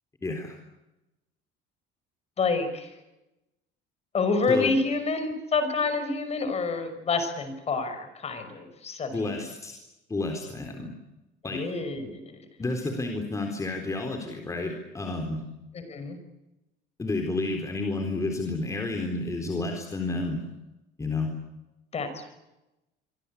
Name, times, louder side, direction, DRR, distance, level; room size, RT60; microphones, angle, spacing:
voice 1, 0.2-0.6 4.5-4.7 9.1-9.8 10.1-10.9 11.4-11.6 12.6-15.4 17.0-20.4 21.0-21.3, left 2 dB, 15° left, 4 dB, 4.0 m, -30 dB
voice 2, 2.4-2.9 4.1-9.3 11.4-12.4 15.7-16.2 21.9-22.4, left 4 dB, 35° left, 10 dB, 5.8 m, -28 dB
26.5 x 24.5 x 8.6 m, 0.97 s
cardioid pair, 135°, 19 cm